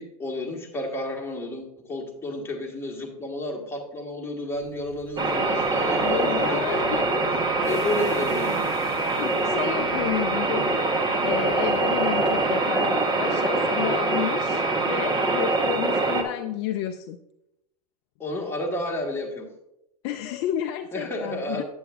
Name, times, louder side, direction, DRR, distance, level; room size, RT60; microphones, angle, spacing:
voice 1, 0.0-7.1 7.6-8.7 18.2-19.5 20.9-21.6, left 1 dB, 10° left, 0 dB, 1.6 m, -31 dB
sound 1, 4.5-12.4, right 1 dB, 85° right, 2.7 m, -44 dB
sound 2, 5.2-16.2, right 2 dB, 25° right, 1.1 m, -24 dB
voice 2, 6.0-7.4 9.0-17.2 20.0-21.6, left 10 dB, 50° left, 7 dB, 0.5 m, -31 dB
8.6 x 7.9 x 2.5 m, 0.84 s
hypercardioid pair, 95°, 19 cm